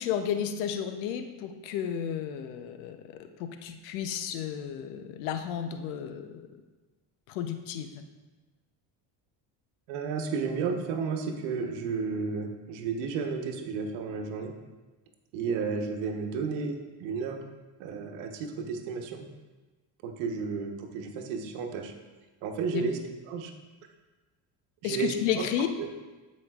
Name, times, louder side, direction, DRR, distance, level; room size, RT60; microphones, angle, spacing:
voice 1, 0.0-6.4 7.3-8.0 22.7-22.9 24.8-25.7, left 9 dB, 85° left, 7 dB, 0.8 m, -32 dB
voice 2, 9.9-14.5 15.3-17.4 17.8-19.3 20.0-21.9 22.4-23.0 23.3-23.5 24.8-25.4 25.8-25.9, right 5 dB, 80° right, 4 dB, 1.1 m, -32 dB
13.5 x 5.3 x 2.4 m, 1.2 s
supercardioid pair, 80°, 48 cm